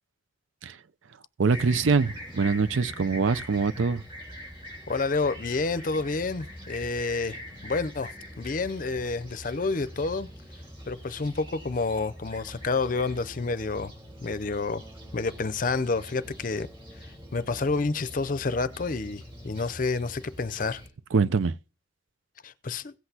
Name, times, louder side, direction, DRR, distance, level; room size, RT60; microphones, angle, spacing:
voice 1, 1.4-4.0 21.1-21.6, right 4 dB, 90° right, 0.6 m, -24 dB
Fixed-wing aircraft airplane, 1.5-20.9, equal, 30° right, 3.6 m, -43 dB
voice 2, 4.9-10.3 10.9-13.9 14.2-14.8 15.1-16.7 17.0-17.1 17.3-20.8 22.4-22.9, left 3 dB, 45° left, 0.5 m, -29 dB
16.5 x 8.0 x 2.8 m
head